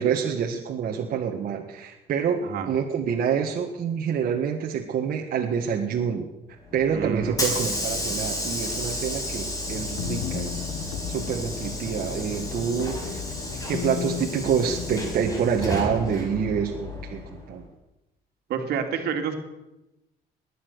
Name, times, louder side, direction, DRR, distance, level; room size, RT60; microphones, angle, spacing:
voice 1, 0.0-6.3 6.7-10.7 11.1-13.2 13.7-17.7, right 7 dB, 60° right, 0 dB, 1.7 m, -27 dB
Hiss / Sliding door, 6.7-17.5, left 1 dB, 20° left, 5.0 m, -32 dB
voice 2, 6.9-7.6 18.5-19.3, right 7 dB, 80° right, 5 dB, 2.4 m, -29 dB
sound 1, 9.7-16.1, left 10 dB, 75° left, 1.1 m, -35 dB
20.0 x 10.0 x 6.7 m, 0.96 s
cardioid pair, 105°, 16 cm